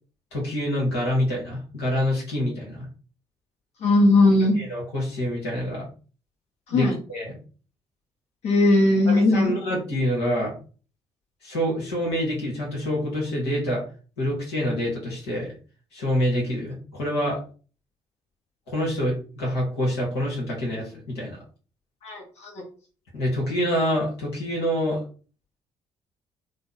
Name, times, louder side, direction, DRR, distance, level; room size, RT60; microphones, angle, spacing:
voice 1, 0.3-2.9 4.6-5.9 6.7-7.4 9.1-10.5 11.4-13.8 14.2-15.5 15.9-17.4 18.7-21.4 23.1-25.0, equal, 75° left, -3 dB, 1.3 m, -26 dB
voice 2, 3.8-4.6 6.7-7.0 8.4-9.5 22.0-22.5, left 2 dB, 50° left, 0 dB, 1.3 m, -18 dB
3.9 x 2.2 x 3.8 m, 0.38 s
figure-of-eight pair, 45°, 14 cm